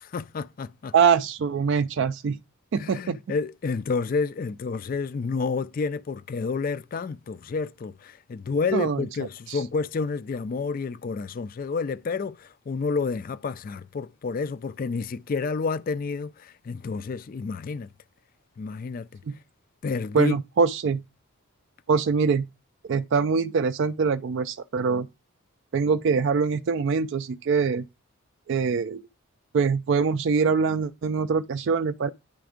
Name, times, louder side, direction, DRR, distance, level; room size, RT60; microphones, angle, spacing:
voice 1, 0.0-0.9 2.8-17.9 18.6-19.2 19.8-20.4, left 4 dB, 40° left, 0.3 m, -30 dB
voice 2, 0.9-2.4 2.7-3.2 8.7-9.0 9.5-9.6 19.3-19.4 20.1-21.0 21.9-22.5 22.9-25.1 25.7-27.9 28.5-29.0 29.5-32.1, right 5 dB, 55° right, 0.3 m, -23 dB
10.0 x 3.4 x 5.0 m
head